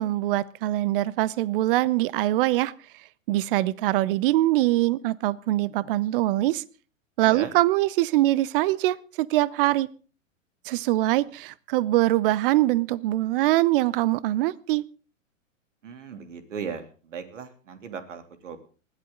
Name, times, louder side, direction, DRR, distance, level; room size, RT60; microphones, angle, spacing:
voice 1, 0.0-2.7 3.3-6.6 7.2-9.9 10.7-14.8, right 16 dB, 45° right, 0.9 m, -23 dB
voice 2, 7.2-7.5 15.8-18.6, right 6 dB, 70° right, 3.3 m, -37 dB
20.5 x 15.0 x 3.9 m
figure-of-eight pair, 110°, 39 cm